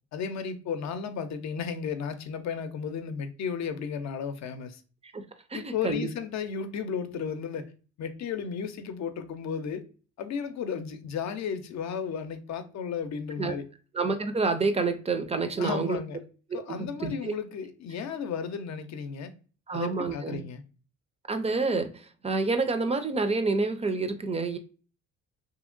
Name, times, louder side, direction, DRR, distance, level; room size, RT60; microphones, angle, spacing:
voice 1, 0.1-4.8 5.5-7.7 8.0-9.8 10.2-13.6 15.6-16.2 16.5-19.3 19.7-20.6, left 6 dB, 65° left, 0.6 m, -34 dB
voice 2, 5.5-6.1 13.4-13.5 13.9-16.0 16.5-17.3 19.7-20.4 21.3-24.6, right 3 dB, 20° right, 0.4 m, -28 dB
2.9 x 2.7 x 2.4 m
cardioid pair, 90°, 30 cm